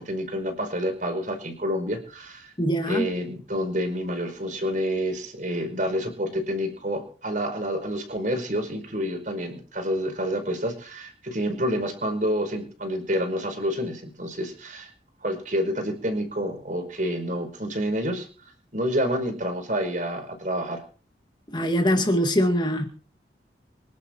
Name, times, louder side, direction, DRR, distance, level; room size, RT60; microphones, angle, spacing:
voice 1, 0.0-2.5 2.8-14.9 15.2-18.3 18.7-20.8, equal, 45° right, 5.0 m, -28 dB
voice 2, 2.6-3.1 21.5-22.9, equal, 25° left, 2.2 m, -23 dB
25.5 x 11.5 x 4.6 m
head